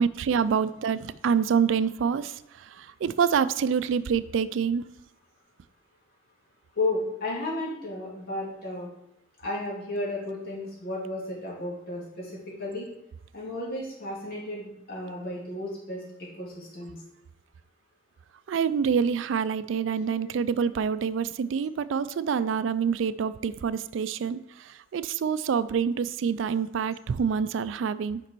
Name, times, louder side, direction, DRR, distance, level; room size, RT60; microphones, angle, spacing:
voice 1, 0.0-2.3 2.8-4.8 18.5-24.4 24.9-28.2, right 6 dB, 80° right, 15 dB, 0.3 m, -26 dB
voice 2, 6.8-8.9 9.4-12.9 13.3-16.9 19.7-20.2, left 2 dB, 50° left, -5 dB, 2.6 m, -33 dB
6.7 x 5.2 x 4.5 m, 0.82 s
head